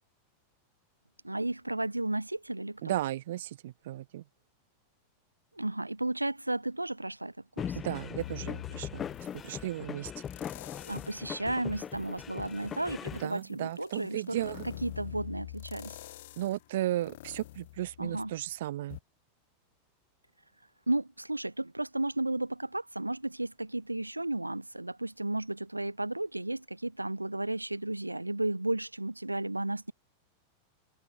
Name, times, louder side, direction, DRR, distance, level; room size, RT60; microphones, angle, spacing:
voice 1, 1.2-2.9 5.6-7.8 10.8-14.5 14.8-16.0 18.0-18.3 20.9-29.9, right 2 dB, 85° right, 0.9 m, -33 dB
voice 2, 2.8-4.2 7.7-9.1 9.3-10.1 13.2-14.7 16.4-19.0, right 14 dB, 55° right, 1.5 m, -35 dB
sound 1, 7.6-13.2, left 8 dB, 25° left, 5.6 m, -40 dB
sound 2, 8.2-9.6 10.2-11.3 11.7-18.4 18.9-19.0, left 16 dB, 55° left, 1.8 m, -46 dB
open air
figure-of-eight pair, 90°, 0 cm